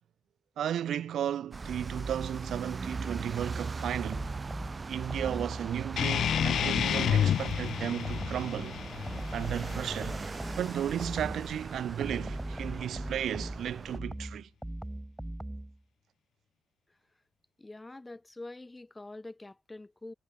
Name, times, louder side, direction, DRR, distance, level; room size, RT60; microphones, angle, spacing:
voice 1, 0.6-4.3 4.9-8.8 9.3-10.2 10.6-14.5, right 10 dB, 75° right, 0.9 m, -34 dB
sound 1, 1.5-14.0, right 4 dB, 25° right, 0.6 m, -40 dB
sound 2, 4.1-5.7 6.1-8.6 9.1-11.5 12.0-15.8, right 1 dB, 5° right, 1.5 m, -39 dB
sound 3, 6.0-11.0, left 9 dB, 65° left, 0.4 m, -30 dB
voice 2, 17.6-20.1, left 2 dB, 15° left, 0.8 m, -45 dB
wide cardioid pair, 155°, 0 cm